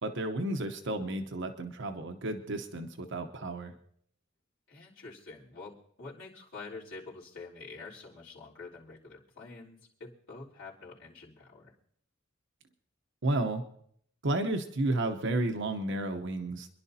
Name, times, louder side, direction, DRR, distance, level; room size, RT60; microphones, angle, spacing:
voice 1, 0.0-3.7 13.2-13.6 14.2-16.7, right 2 dB, 65° right, 5 dB, 0.9 m, -32 dB
voice 2, 4.7-11.7, left 3 dB, 65° left, -7 dB, 3.8 m, -47 dB
27.5 x 11.0 x 2.8 m, 0.66 s
head